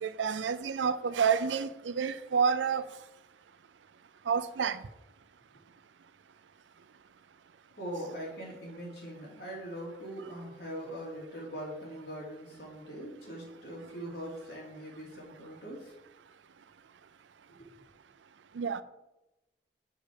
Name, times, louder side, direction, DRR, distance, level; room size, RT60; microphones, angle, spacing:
voice 1, 0.0-2.9 4.3-4.8 18.6-18.8, right 6 dB, 85° right, 0.4 m, -29 dB
voice 2, 7.8-15.9 17.6-17.7, right 1 dB, 60° left, 2.8 m, -41 dB
6.4 x 5.1 x 6.4 m
head